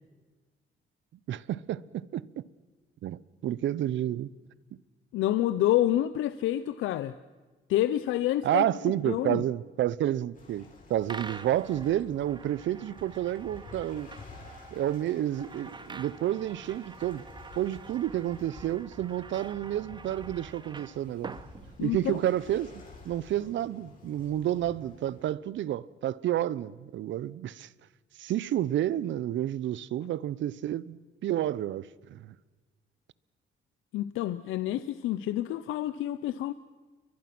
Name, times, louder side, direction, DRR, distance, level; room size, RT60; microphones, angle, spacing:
voice 1, 1.3-2.4 3.0-4.3 8.4-10.6 10.9-14.1 14.7-17.2 17.6-21.4 21.8-22.7 23.0-27.7 28.2-32.4, right 12 dB, 70° right, 0.8 m, -30 dB
voice 2, 5.1-7.1 7.7-8.7 9.0-9.4 21.8-22.2 33.9-36.5, left 13 dB, 90° left, 0.7 m, -28 dB
Waves surf, 10.3-25.3, left 3 dB, 45° left, 7.5 m, -51 dB
sound 1, 11.1-22.3, right 4 dB, 20° right, 1.0 m, -47 dB
29.5 x 23.0 x 6.1 m
cardioid pair, 90°, 20 cm